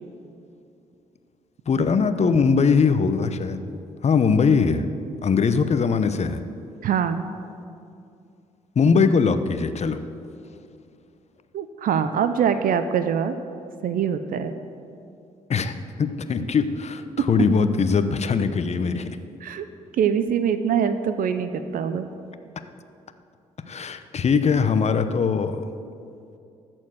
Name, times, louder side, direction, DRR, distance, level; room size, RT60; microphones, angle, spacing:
voice 1, 1.7-3.6 4.0-4.9 5.2-6.4 8.8-10.0 15.5-19.1 23.7-25.7, left 5 dB, 45° left, 10 dB, 0.8 m, -21 dB
voice 2, 6.8-7.3 11.5-13.3 13.8-14.5 17.2-17.3 19.4-19.6 19.9-22.1, right 7 dB, 65° right, 10 dB, 0.6 m, -23 dB
13.5 x 4.6 x 7.9 m, 2.5 s
hypercardioid pair, 50°, 16 cm